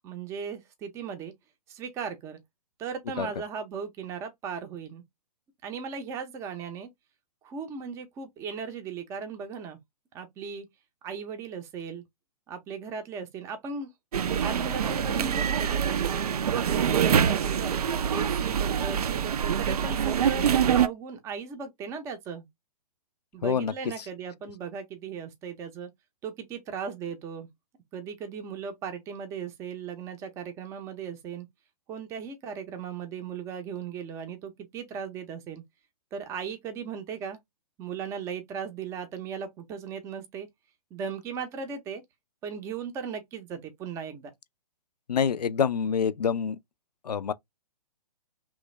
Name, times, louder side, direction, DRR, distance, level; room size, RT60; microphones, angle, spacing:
voice 1, 0.0-1.3 1.7-2.4 2.8-5.0 5.6-6.9 7.4-9.8 10.1-10.7 11.0-12.0 12.5-13.9 14.2-16.1 16.5-17.8 18.1-22.5 23.3-25.9 26.2-27.5 27.9-31.5 31.9-35.6 36.1-37.4 37.8-40.5 40.9-42.0 42.4-44.3, right 6 dB, 15° right, 0.5 m, -37 dB
sound 1, 14.1-20.9, right 8 dB, 65° right, 0.4 m, -25 dB
voice 2, 23.4-23.7 45.1-46.6 47.0-47.3, left 7 dB, 75° left, 0.4 m, -26 dB
3.1 x 2.2 x 3.1 m
figure-of-eight pair, 125°, 21 cm